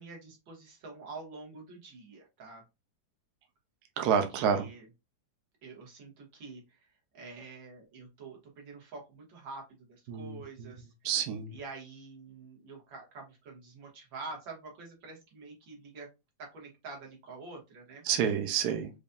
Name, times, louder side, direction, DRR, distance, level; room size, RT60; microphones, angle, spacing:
voice 1, 0.0-2.6 4.4-4.9 5.6-6.8 7.1-9.6 9.9-10.9 11.5-16.1 16.4-18.0, right 3 dB, 90° right, 0 dB, 2.1 m, -46 dB
voice 2, 4.0-4.7 10.1-10.7 11.0-11.6 18.0-18.9, right 7 dB, 65° right, 6 dB, 1.1 m, -29 dB
5.1 x 2.6 x 2.2 m, 0.24 s
omnidirectional pair, 2.0 m